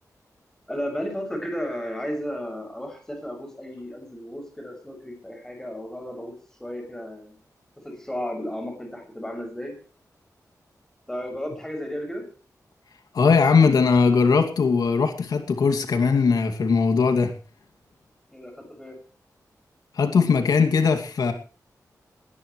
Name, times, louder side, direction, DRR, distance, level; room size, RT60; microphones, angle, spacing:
voice 1, 0.7-6.3 6.6-7.4 7.8-9.7 11.1-12.3 18.3-19.0, equal, 10° left, 7.0 m, -33 dB
voice 2, 13.1-17.3 19.9-21.3, left 5 dB, 85° left, 2.5 m, -20 dB
20.5 x 18.5 x 3.3 m
wide cardioid pair, 180°, 6 cm